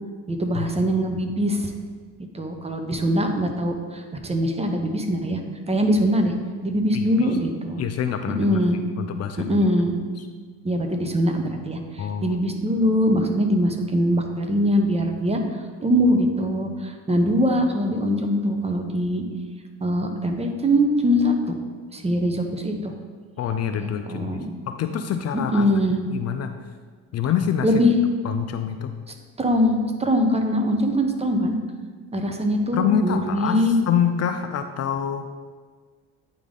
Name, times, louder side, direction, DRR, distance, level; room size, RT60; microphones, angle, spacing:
voice 1, 0.3-1.7 2.3-5.4 5.7-6.3 6.6-7.8 8.4-8.8 9.5-10.0 10.6-15.4 15.8-19.2 19.8-21.6 21.9-22.9 23.8-24.5 25.5-26.0 27.6-28.0 29.4-31.6 32.1-33.8, equal, 20° right, 4 dB, 0.7 m, -22 dB
voice 2, 6.9-7.3 7.8-8.6 9.0-9.5 12.0-12.4 23.4-24.4 24.7-25.7 26.1-26.5 27.1-27.7 28.2-28.9 32.7-35.3, left 8 dB, 50° left, 8 dB, 0.4 m, -26 dB
9.1 x 3.5 x 3.7 m, 1.5 s
cardioid pair, 105°, 34 cm